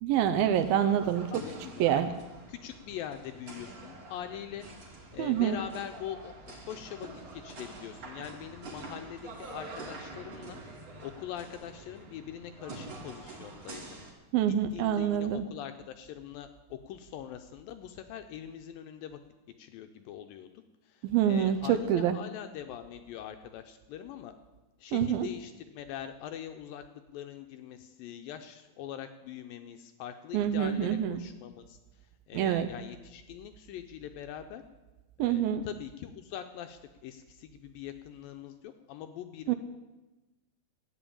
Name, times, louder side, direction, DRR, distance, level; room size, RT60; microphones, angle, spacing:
voice 1, 0.0-1.3 1.8-2.1 5.2-5.6 14.3-15.4 21.0-22.2 24.9-25.3 30.3-31.2 32.3-32.7 35.2-35.6 39.5-39.6, right 10 dB, 80° right, 9 dB, 2.3 m, -26 dB
sound 1, 0.5-14.1, right 2 dB, 40° right, 2.4 m, -46 dB
voice 2, 1.3-2.1 2.5-4.7 5.1-10.6 11.0-13.8 14.4-19.2 19.6-20.5 20.8-24.3 24.8-26.8 27.1-34.6 35.2-39.5, left 10 dB, 80° left, 8 dB, 2.1 m, -43 dB
12.5 x 9.0 x 8.7 m, 1.1 s
omnidirectional pair, 4.6 m